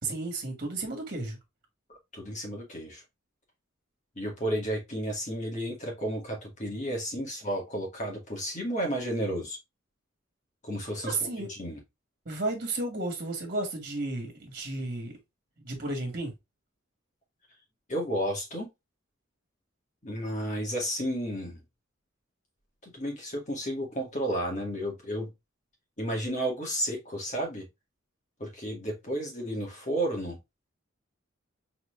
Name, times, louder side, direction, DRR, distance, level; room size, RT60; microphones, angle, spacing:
voice 1, 0.0-1.4 11.0-11.5 12.3-15.1 15.6-16.3, right 2 dB, 45° right, 1.9 m, -33 dB
voice 2, 2.1-3.0 4.2-9.6 10.6-11.8 17.9-18.7 20.0-21.6 22.8-25.3 26.0-27.6 28.4-30.4, equal, 35° left, 2.2 m, -32 dB
4.5 x 4.0 x 2.6 m
head